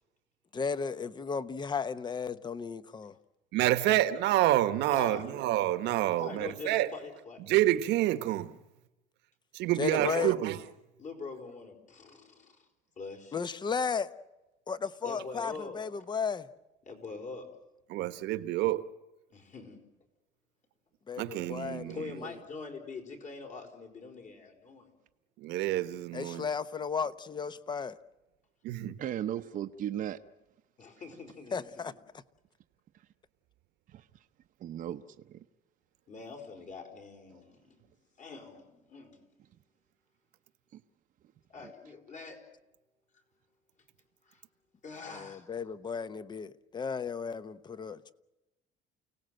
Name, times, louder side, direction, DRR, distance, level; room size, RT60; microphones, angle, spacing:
voice 1, 0.5-3.1 9.8-10.3 13.3-14.1 14.7-16.5 21.1-22.3 26.1-28.0 31.5-31.9 45.1-48.1, left 6 dB, 25° left, 0.9 m, -34 dB
voice 2, 3.5-6.9 7.4-8.6 9.5-10.6 17.9-18.8 21.2-22.1 25.4-26.4 28.6-29.0, right 14 dB, 80° right, 1.3 m, -28 dB
voice 3, 4.9-5.4 6.2-7.4 9.7-10.1 11.0-12.6 13.0-13.4 15.0-15.8 16.9-17.5 19.3-19.8 21.9-24.9 30.8-31.7 36.1-37.8 38.2-39.2 41.5-42.4 44.3-44.4 44.8-45.5, left 4 dB, 45° left, 4.8 m, -44 dB
voice 4, 28.8-30.2 34.6-35.4 37.3-37.4 40.7-40.8, right 11 dB, 50° right, 0.8 m, -36 dB
29.5 x 18.0 x 7.8 m
cardioid pair, 130°, 17 cm